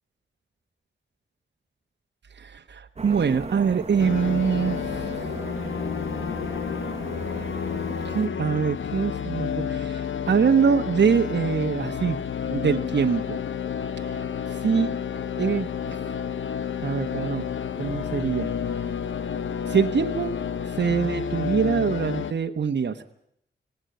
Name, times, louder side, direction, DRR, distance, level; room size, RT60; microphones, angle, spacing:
voice 1, 2.4-5.1 8.0-12.2 12.5-13.4 14.0-14.2 14.5-14.9 15.4-16.0 16.8-17.5 17.8-18.5 19.7-20.3 20.6-23.0, right 6 dB, 60° right, 4 dB, 1.2 m, -24 dB
sound 1, 3.0-8.3, right 4 dB, 30° right, 0.7 m, -37 dB
sound 2, 4.0-22.3, left 7 dB, 75° left, 0.8 m, -30 dB
19.0 x 19.0 x 7.9 m, 0.71 s
wide cardioid pair, 80°, 20 cm